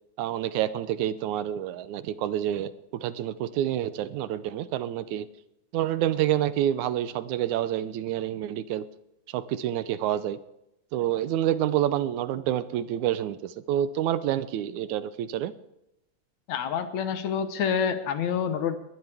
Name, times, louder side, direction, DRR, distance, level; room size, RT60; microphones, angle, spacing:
voice 1, 0.2-5.3 5.7-8.9 9.3-10.4 10.9-15.5, right 11 dB, 80° right, 13 dB, 2.1 m, -28 dB
voice 2, 16.5-18.8, left 7 dB, 70° left, 9 dB, 2.4 m, -27 dB
21.5 x 19.0 x 3.5 m, 0.87 s
omnidirectional pair, 3.4 m